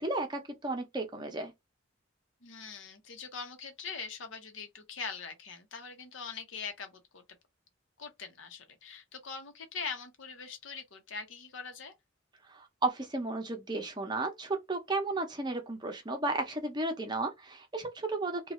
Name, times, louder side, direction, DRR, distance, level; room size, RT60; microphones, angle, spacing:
voice 1, 0.0-1.5 12.5-18.5, right 2 dB, 20° right, 0.6 m, -34 dB
voice 2, 2.4-7.2 8.0-11.9, left 5 dB, 85° left, 0.8 m, -42 dB
2.5 x 2.3 x 3.1 m
head